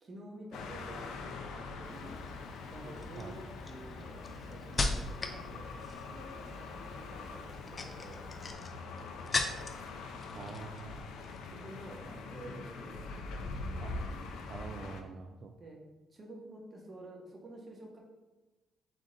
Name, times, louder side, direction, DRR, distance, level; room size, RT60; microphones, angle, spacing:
voice 1, 0.0-2.2 2.7-5.7 6.1-7.4 7.7-8.2 10.1-10.6 11.4-13.2 15.6-15.8 16.1-18.0, right 2 dB, 35° right, 0 dB, 1.0 m, -50 dB
sound 1, 0.5-15.0, left 3 dB, 85° left, 0.5 m, -43 dB
Rain, 1.8-8.5, left 3 dB, ahead, 1.2 m, -55 dB
sound 2, 2.0-2.3 3.0-5.4 5.7-6.2 7.5-9.9 10.2-10.9 11.1-11.4, left 3 dB, 35° left, 0.5 m, -36 dB
voice 2, 10.3-11.1 13.8-14.0 14.5-15.5, right 4 dB, 55° right, 3 dB, 0.3 m, -45 dB
3.7 x 3.7 x 3.8 m, 1.1 s
cardioid pair, 90°, 0 cm